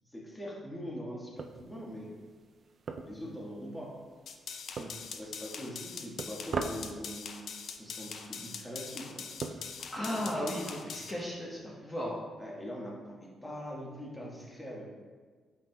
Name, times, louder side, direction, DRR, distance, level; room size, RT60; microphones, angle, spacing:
voice 1, 0.1-2.1 3.0-4.0 4.8-7.4 7.8-9.2 10.0-10.5 12.4-14.9, equal, 10° left, -4 dB, 1.5 m, -43 dB
sound 1, 1.4-10.7, right 4 dB, 50° right, 0.4 m, -44 dB
sound 2, 4.3-11.1, left 6 dB, 70° left, 0.5 m, -43 dB
voice 2, 9.9-12.1, left 1 dB, 25° left, -6 dB, 1.1 m, -35 dB
8.3 x 5.6 x 2.3 m, 1.5 s
cardioid pair, 105°, 0 cm